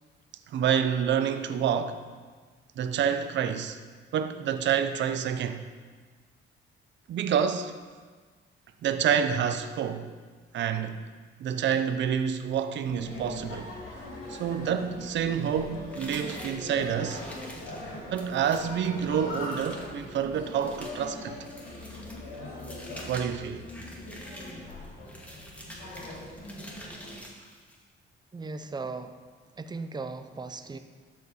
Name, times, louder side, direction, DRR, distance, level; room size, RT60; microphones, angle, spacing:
voice 1, 0.5-2.0 2.8-3.8 4.1-5.6 7.1-7.7 8.8-10.1 10.5-11.0 11.4-13.7 14.3-17.2 18.1-21.4 23.0-23.7, right 8 dB, 65° right, 0.7 m, -28 dB
sound 1, 12.9-27.2, left 1 dB, 85° left, 3.0 m, -41 dB
sound 2, 15.9-27.8, equal, 5° left, 2.0 m, -47 dB
voice 2, 28.3-29.2 29.5-30.8, right 3 dB, 20° right, 0.6 m, -37 dB
12.5 x 5.3 x 4.8 m
cardioid pair, 90°, 20 cm